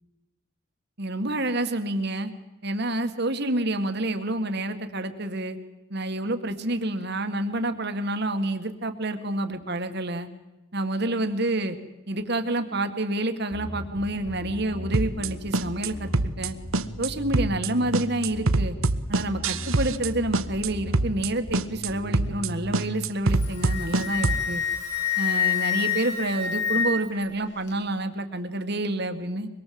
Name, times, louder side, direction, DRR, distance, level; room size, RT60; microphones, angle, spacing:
voice 1, 1.0-2.3 2.6-5.6 5.9-10.3 10.7-11.8 12.1-16.6 17.0-18.8 19.1-24.6 25.2-29.5, right 1 dB, 50° right, 8 dB, 1.9 m, -28 dB
Bass guitar, 13.5-23.1, left 1 dB, 80° left, 3.9 m, -38 dB
sound 1, 14.9-15.3 15.5-15.9 16.1-16.5 16.7-17.1 17.3-17.7 17.9-20.1 20.3-20.7 20.9-21.3 21.5-21.9 22.1-22.5 22.7-24.4, right 3 dB, 75° right, 1.1 m, -24 dB
Wind instrument woodwind instrument, 23.3-27.2, left 7 dB, 55° left, 4.7 m, -27 dB
24.5 x 22.0 x 7.8 m, 1.0 s
head